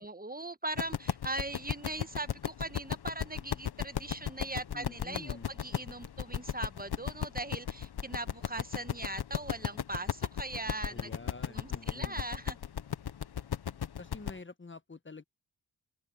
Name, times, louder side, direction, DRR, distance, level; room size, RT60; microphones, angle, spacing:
voice 1, 0.0-11.1 11.5-12.6, right 2 dB, 20° right, 1.4 m, -40 dB
sound 1, 0.8-14.4, left 9 dB, 65° left, 1.2 m, -35 dB
voice 2, 4.7-5.5 10.9-12.2 14.0-15.2, left 3 dB, 30° left, 1.3 m, -47 dB
open air
cardioid pair, 45°, 42 cm